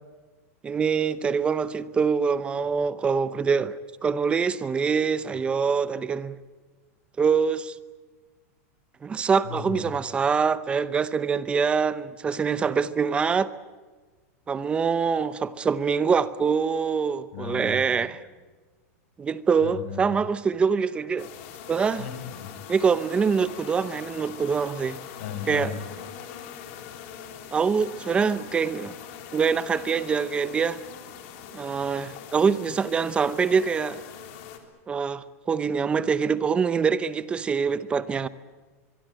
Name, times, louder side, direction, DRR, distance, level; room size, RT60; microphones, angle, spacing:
voice 1, 0.6-3.8 4.0-6.4 7.2-7.7 9.0-13.5 14.5-18.2 19.2-21.3 21.7-22.1 22.7-25.0 25.5-25.7 27.5-28.9 29.3-30.8 31.5-34.0 34.9-38.3, right 6 dB, 15° right, 0.8 m, -24 dB
voice 2, 9.4-9.9 17.3-18.1 19.6-20.0 21.6-22.5 25.2-25.8, left 7 dB, 65° left, 6.0 m, -36 dB
sound 1, 21.2-34.6, left 8 dB, 50° left, 3.7 m, -42 dB
24.0 x 23.5 x 8.9 m
supercardioid pair, 165°, 8 cm